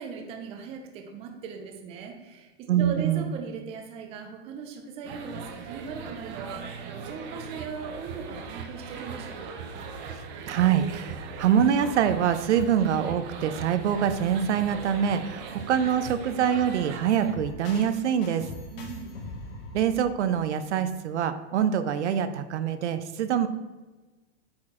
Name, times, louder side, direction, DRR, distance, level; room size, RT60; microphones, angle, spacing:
voice 1, 0.0-9.6 18.7-19.2, right 5 dB, 20° right, 4 dB, 0.5 m, -39 dB
voice 2, 2.7-3.3 10.5-18.4 19.7-23.5, right 8 dB, 80° right, 10 dB, 0.7 m, -25 dB
sound 1, 5.0-17.3, right 5 dB, 40° right, 0.8 m, -39 dB
sound 2, 17.1-21.0, left 2 dB, 55° left, 2.2 m, -42 dB
8.7 x 4.4 x 3.7 m, 1.2 s
supercardioid pair, 155°, 34 cm